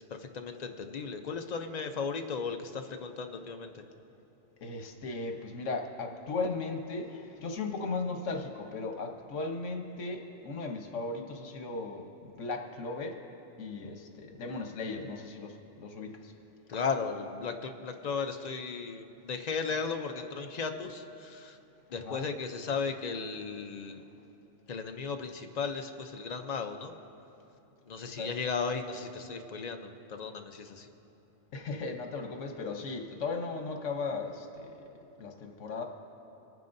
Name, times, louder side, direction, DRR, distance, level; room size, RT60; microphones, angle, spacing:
voice 1, 0.0-3.8 16.7-21.6 21.9-24.0 24.7-26.9 27.9-30.9, left 5 dB, 45° left, 6 dB, 0.5 m, -36 dB
voice 2, 4.6-13.2 13.6-16.3 22.0-22.3 28.0-28.3 31.5-34.7 35.2-35.8, left 3 dB, 80° left, 3 dB, 1.3 m, -37 dB
26.0 x 9.3 x 2.6 m, 3.0 s
omnidirectional pair, 1.3 m